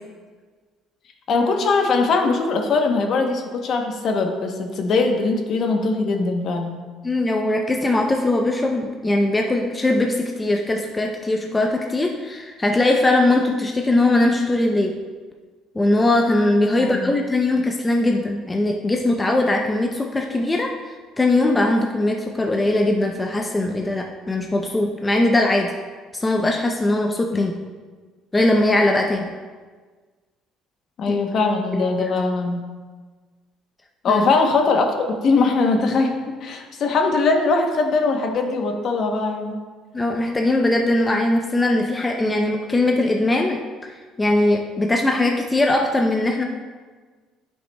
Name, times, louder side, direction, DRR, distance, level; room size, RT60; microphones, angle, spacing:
voice 1, 1.3-6.7 16.8-17.1 27.3-27.4 31.0-32.6 34.0-39.6, left 3 dB, 50° left, 3 dB, 0.9 m, -21 dB
voice 2, 7.0-15.0 15.7-20.7 21.2-25.7 26.1-27.5 28.3-29.3 31.1-31.2 31.7-32.1 34.1-34.2 39.9-46.4, left 2 dB, 15° left, 2 dB, 0.5 m, -20 dB
10.5 x 5.5 x 2.3 m, 1.4 s
cardioid pair, 115°, 0 cm